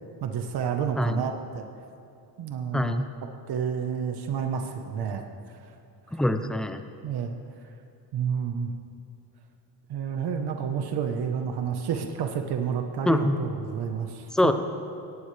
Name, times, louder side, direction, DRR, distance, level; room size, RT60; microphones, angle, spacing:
voice 1, 0.2-1.7 2.4-3.0 3.5-5.7 7.0-7.3 8.1-8.7 9.9-14.5, right 7 dB, 70° right, 4 dB, 1.3 m, -30 dB
voice 2, 2.7-3.0 6.1-6.8 13.1-13.4 14.3-14.5, left 1 dB, ahead, 7 dB, 0.6 m, -23 dB
23.0 x 18.5 x 3.4 m, 2.7 s
cardioid pair, 170°, 41 cm